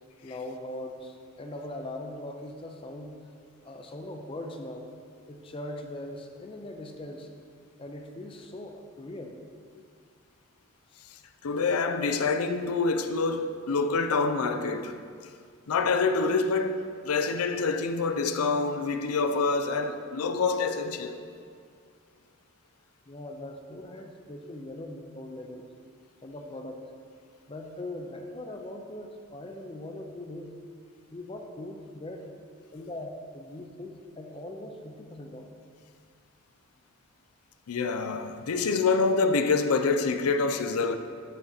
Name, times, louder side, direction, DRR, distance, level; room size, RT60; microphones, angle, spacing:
voice 1, 0.2-3.2 3.6-4.9 5.3-7.3 7.8-9.4 23.1-25.7 26.2-26.8 27.5-30.5 31.1-32.3 32.7-35.5, left 1 dB, 25° left, 0.5 m, -40 dB
voice 2, 11.4-14.9 15.7-21.2 37.7-41.0, left 4 dB, 85° left, 0.5 m, -26 dB
12.0 x 4.2 x 3.9 m
head